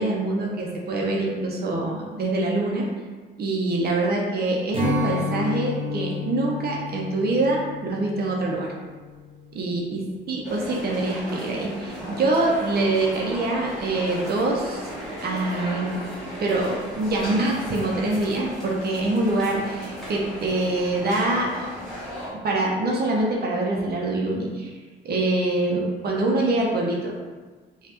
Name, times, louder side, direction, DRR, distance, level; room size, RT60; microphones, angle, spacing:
voice 1, 0.0-2.9 3.4-8.7 9.5-10.0 10.3-14.9 15.2-16.0 16.4-21.7 22.4-24.7 25.0-27.1, right 2 dB, 50° right, -2 dB, 0.6 m, -25 dB
Strum, 4.7-10.2, left 3 dB, 25° right, 0.9 m, -32 dB
sound 1, 10.4-22.3, equal, ahead, 1.1 m, -36 dB
3.2 x 2.3 x 2.8 m, 1.4 s
cardioid pair, 90°, 20 cm